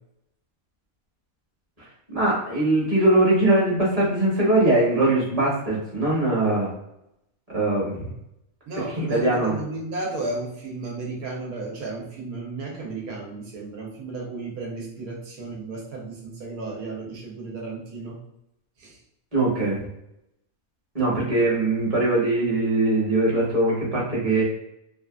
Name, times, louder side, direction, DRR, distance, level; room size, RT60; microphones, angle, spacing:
voice 1, 2.1-6.7 7.5-8.1 9.0-9.5 19.3-19.8 20.9-24.4, right 2 dB, 30° right, -6 dB, 0.9 m, -21 dB
voice 2, 8.7-18.2 18.8-19.0, right 3 dB, 90° right, -2 dB, 1.2 m, -34 dB
2.8 x 2.4 x 2.3 m, 0.83 s
omnidirectional pair, 1.5 m